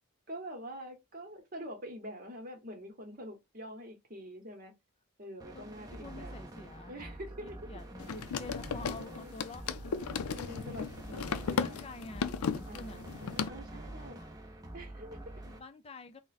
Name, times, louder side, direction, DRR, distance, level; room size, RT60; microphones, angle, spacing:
voice 1, 0.3-4.7 5.2-6.3 6.9-7.6 8.8-9.4 10.3-11.8 12.7-14.2 14.7-15.3, equal, 40° right, 0.9 m, -45 dB
sound 1, 5.4-15.6, right 1 dB, 15° right, 0.6 m, -47 dB
voice 2, 5.5-7.2 7.4-9.9 11.2-13.0 13.7-13.8 14.2-14.3 15.5-16.2, left 2 dB, 25° left, 0.4 m, -48 dB
sound 2, 8.0-13.5, left 6 dB, 90° left, 0.4 m, -35 dB
3.6 x 2.1 x 4.0 m
head